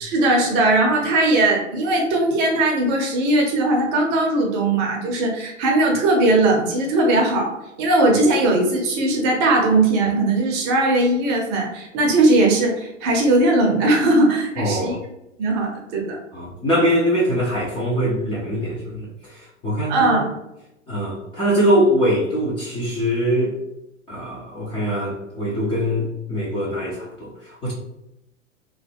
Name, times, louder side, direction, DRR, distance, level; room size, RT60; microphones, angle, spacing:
voice 1, 0.0-7.5 7.8-15.0 15.4-16.2 19.9-20.3, right 2 dB, 25° right, 0 dB, 0.6 m, -19 dB
voice 2, 14.6-15.0 16.3-20.2 20.9-23.5 24.1-27.7, equal, 15° left, -6 dB, 0.4 m, -22 dB
3.0 x 2.1 x 3.3 m, 0.89 s
figure-of-eight pair, 100°, 38 cm